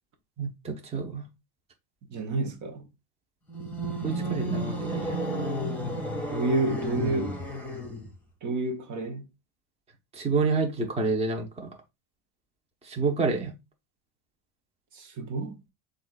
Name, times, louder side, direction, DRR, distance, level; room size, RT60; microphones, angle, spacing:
voice 1, 0.4-1.2 4.0-5.2 10.1-11.7 12.9-13.5, right 4 dB, 15° right, 0.9 m, -28 dB
voice 2, 2.1-2.9 6.3-7.4 8.4-9.3 14.9-15.6, right 3 dB, 40° right, 1.0 m, -29 dB
sound 1, 3.5-8.2, equal, 5° left, 1.7 m, -32 dB
7.4 x 2.6 x 2.4 m
supercardioid pair, 130°, 45 cm